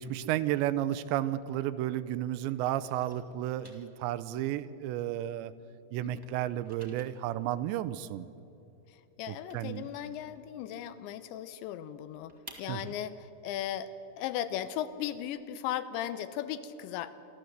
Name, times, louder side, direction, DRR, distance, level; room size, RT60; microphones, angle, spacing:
voice 1, 0.0-5.5 5.9-8.3 9.3-9.9 12.7-12.9, right 13 dB, 85° right, 14 dB, 2.9 m, -32 dB
sound 1, 1.7-2.2 2.4-5.7 5.9-11.0 11.3-11.4 11.7-15.4, right 1 dB, 40° right, 0.3 m, -56 dB
voice 2, 9.2-12.3 12.6-17.1, left 11 dB, 85° left, 13 dB, 3.1 m, -37 dB
26.0 x 14.0 x 8.0 m, 2.8 s
omnidirectional pair, 5.1 m